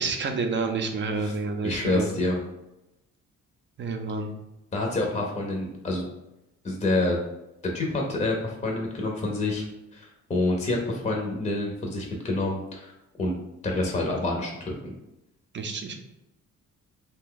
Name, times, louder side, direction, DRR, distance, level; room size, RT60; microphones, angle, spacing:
voice 1, 0.0-2.1 3.8-4.3 15.5-15.9, right 4 dB, 40° right, 5 dB, 0.5 m, -29 dB
voice 2, 1.6-2.4 4.7-6.1 6.6-7.2 7.7-9.6 9.9-13.3 13.6-14.9, left 2 dB, 20° left, 0 dB, 0.6 m, -27 dB
2.6 x 2.2 x 3.7 m, 0.91 s
cardioid pair, 90°, 30 cm